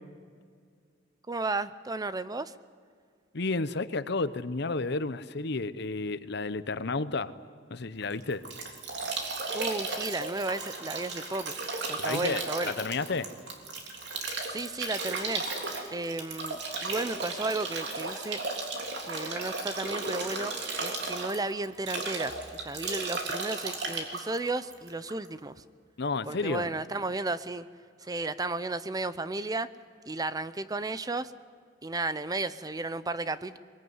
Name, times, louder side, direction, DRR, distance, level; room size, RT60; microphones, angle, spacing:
voice 1, 1.3-2.5 9.5-11.5 11.9-12.7 14.5-15.4 15.9-18.4 19.1-25.6 26.3-27.7 28.0-29.7 30.1-31.3 31.8-33.6, right 2 dB, 20° right, 14 dB, 0.6 m, -33 dB
voice 2, 3.3-7.3 7.7-8.4 12.0-13.3 26.0-26.7, left 3 dB, 65° left, 14 dB, 0.9 m, -31 dB
Bathtub (filling or washing) / Drip / Trickle dribble, 8.0-25.3, right 3 dB, 65° right, 3.5 m, -35 dB
22.5 x 22.0 x 9.6 m, 2.1 s
head